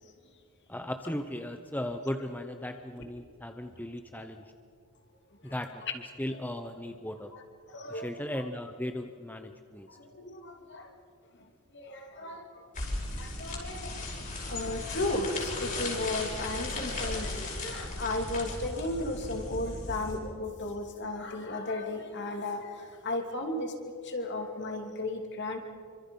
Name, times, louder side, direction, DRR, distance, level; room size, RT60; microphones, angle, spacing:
voice 1, 0.7-4.4 5.4-5.8 6.2-7.3 7.9-9.9, left 1 dB, 10° left, 7 dB, 0.8 m, -37 dB
voice 2, 7.7-8.4 10.1-10.9 11.7-12.4 13.1-14.0 14.5-22.8 23.0-23.7 24.0-25.6, left 2 dB, 50° left, 3 dB, 2.8 m, -34 dB
sound 1, 12.7-20.2, left 2 dB, 35° left, 5.2 m, -36 dB
27.5 x 25.0 x 5.5 m, 2.4 s
head